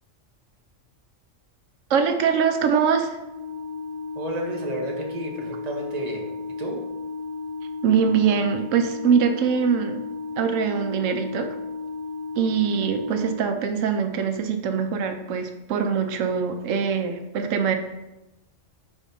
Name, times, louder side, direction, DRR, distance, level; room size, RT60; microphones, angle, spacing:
voice 1, 1.9-3.2 7.8-10.0 10.4-11.5 12.4-17.8, right 6 dB, 85° right, 6 dB, 1.0 m, -23 dB
Organ, 3.2-14.0, left 4 dB, 50° left, 0.9 m, -34 dB
voice 2, 4.2-6.3 6.6-6.8, right 1 dB, 35° right, 0 dB, 1.1 m, -31 dB
4.4 x 4.4 x 5.3 m, 0.96 s
omnidirectional pair, 1.3 m